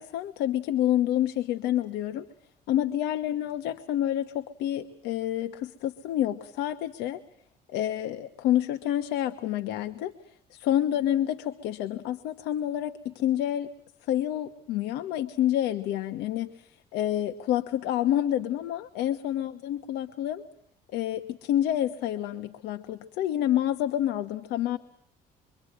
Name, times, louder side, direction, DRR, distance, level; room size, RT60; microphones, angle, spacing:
voice 1, 0.0-2.3 2.7-7.2 7.7-13.7 14.0-20.4 20.9-24.8, left 12 dB, 90° left, 9 dB, 1.1 m, -28 dB
25.5 x 24.5 x 8.6 m, 0.68 s
cardioid pair, 110°, 17 cm